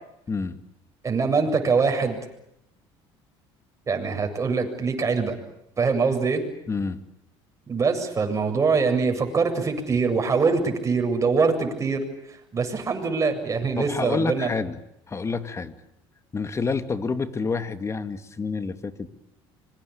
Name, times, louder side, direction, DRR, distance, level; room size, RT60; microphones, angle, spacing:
voice 1, 0.3-0.6 6.7-7.0 13.8-14.8 15.1-15.7 16.3-19.1, left 4 dB, 25° left, 10 dB, 2.5 m, -28 dB
voice 2, 1.0-2.2 3.9-5.3 5.8-6.4 7.7-12.0 12.5-14.5, right 4 dB, 30° right, 5 dB, 7.7 m, -23 dB
26.0 x 24.0 x 8.7 m, 0.81 s
cardioid pair, 105°, 11 cm